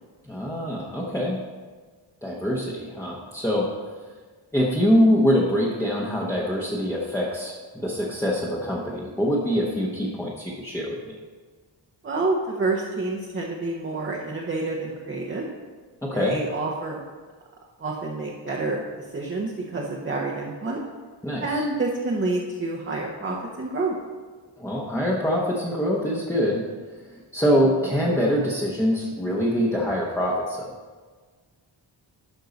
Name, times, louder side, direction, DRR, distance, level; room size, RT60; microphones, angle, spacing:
voice 1, 0.3-1.4 2.2-3.7 4.5-11.2 16.0-16.4 21.2-21.6 24.6-26.7 27.3-30.8, equal, 5° left, -4 dB, 0.9 m, -24 dB
voice 2, 12.0-15.4 16.1-17.0 17.8-18.8 19.1-20.8 21.4-23.9, right 2 dB, 25° right, -2 dB, 0.8 m, -28 dB
11.5 x 5.4 x 4.0 m, 1.5 s
wide cardioid pair, 165°, 45 cm